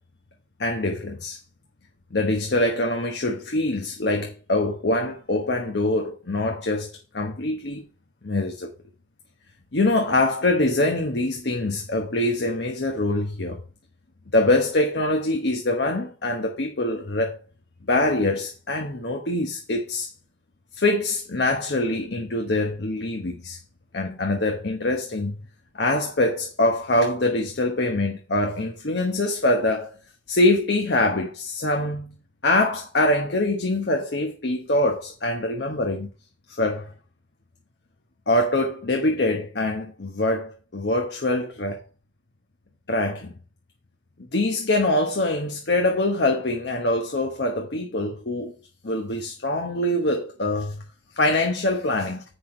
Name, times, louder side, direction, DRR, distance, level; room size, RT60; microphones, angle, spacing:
voice 1, 0.6-1.4 2.1-7.8 8.2-8.7 9.7-13.6 14.3-17.4 17.9-20.1 20.7-23.6 23.9-25.4 25.7-29.9 30.3-32.1 32.4-36.1 36.6-36.9 38.3-41.8 42.9-43.3 44.3-48.6 48.8-50.8 51.2-52.2, left 2 dB, 65° left, 1.0 m, -24 dB
7.9 x 5.7 x 4.3 m
head